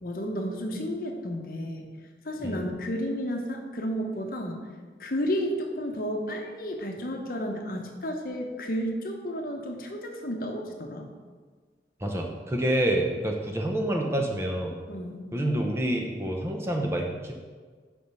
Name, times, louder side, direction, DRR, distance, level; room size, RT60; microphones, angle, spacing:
voice 1, 0.0-1.9 2.2-4.6 5.0-11.0 14.9-15.3, equal, 55° left, 2 dB, 0.8 m, -32 dB
voice 2, 12.0-14.8 15.3-17.3, right 1 dB, 15° right, 1 dB, 0.6 m, -27 dB
5.2 x 4.9 x 5.5 m, 1.5 s
head